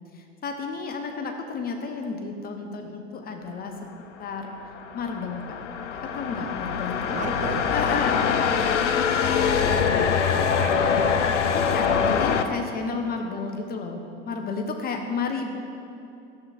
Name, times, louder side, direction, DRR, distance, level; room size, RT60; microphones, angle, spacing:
voice 1, 0.1-3.8 4.2-4.5 4.9-5.4 5.9-8.2 8.6-8.7 10.2-10.4 11.5-15.5, left 4 dB, 25° left, 4 dB, 0.6 m, -32 dB
sound 1, 4.5-12.4, left 6 dB, 75° left, 0.5 m, -24 dB
voice 2, 7.1-7.7 9.4-9.9 10.2-11.3, right 5 dB, 20° right, 5 dB, 0.6 m, -35 dB
11.5 x 7.3 x 2.5 m, 2.7 s
figure-of-eight pair, 80°, 36 cm